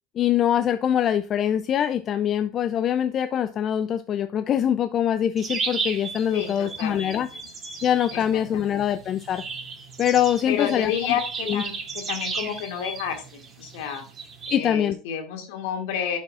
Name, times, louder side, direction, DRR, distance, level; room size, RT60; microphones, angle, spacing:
voice 1, 0.2-7.3 7.8-9.4 10.0-10.9 11.5-11.6 14.5-15.0, left 10 dB, 40° left, 0.4 m, -23 dB
sound 1, 5.4-14.6, right 4 dB, 30° right, 2.7 m, -35 dB
voice 2, 6.3-7.2 8.1-8.8 10.5-14.0 14.5-16.2, left 8 dB, 70° left, 2.1 m, -30 dB
11.0 x 5.3 x 2.4 m
hypercardioid pair, 90°, 0 cm